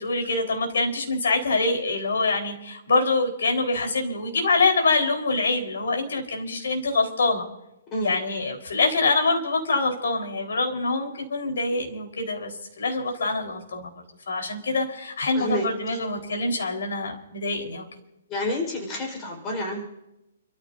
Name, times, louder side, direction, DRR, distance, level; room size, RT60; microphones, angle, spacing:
voice 1, 0.0-7.5 8.0-12.5 12.8-13.9 14.3-17.8, left 3 dB, 80° left, 2 dB, 4.4 m, -25 dB
voice 2, 18.3-19.8, left 1 dB, 20° left, 0 dB, 4.6 m, -29 dB
30.0 x 14.5 x 2.7 m, 0.91 s
hypercardioid pair, 165°, 0 cm